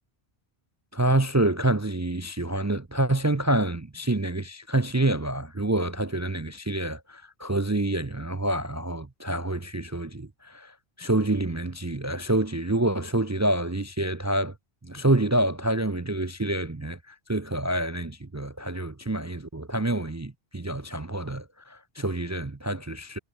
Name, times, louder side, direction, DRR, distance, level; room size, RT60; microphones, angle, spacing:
voice 1, 0.9-14.5 14.8-23.2, right 1 dB, 20° right, 0.6 m, -27 dB
omnidirectional pair, 1.1 m